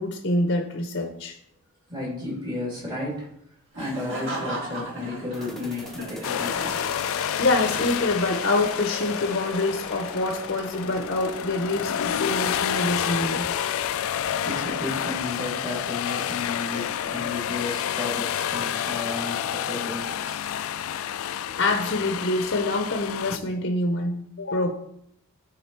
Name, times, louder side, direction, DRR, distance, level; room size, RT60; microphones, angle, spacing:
voice 1, 0.0-1.4 7.4-13.5 21.6-24.7, left 2 dB, 50° left, 4 dB, 0.7 m, -26 dB
voice 2, 1.9-3.3 3.7-6.7 14.4-20.4, left 2 dB, 20° right, -5 dB, 2.7 m, -33 dB
Laughter, 3.7-7.7, right 1 dB, 55° right, 1.7 m, -36 dB
sound 1, 5.3-15.4, left 1 dB, ahead, 0.9 m, -43 dB
sound 2, 6.2-23.4, left 9 dB, 70° left, 0.3 m, -29 dB
9.7 x 3.8 x 4.6 m, 0.73 s
head